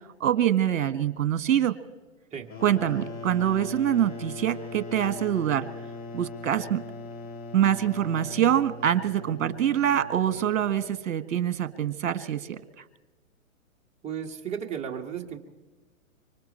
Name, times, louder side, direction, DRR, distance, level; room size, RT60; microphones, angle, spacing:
voice 1, 0.2-1.7 2.6-5.7 6.1-6.8 7.5-12.8, right 10 dB, 65° right, 12 dB, 1.5 m, -25 dB
sound 1, 2.5-11.0, left 3 dB, 20° left, 1.5 m, -40 dB
voice 2, 14.0-15.4, right 8 dB, 15° right, 2 dB, 1.5 m, -34 dB
26.0 x 24.5 x 4.3 m, 1.2 s
hypercardioid pair, 140°, 41 cm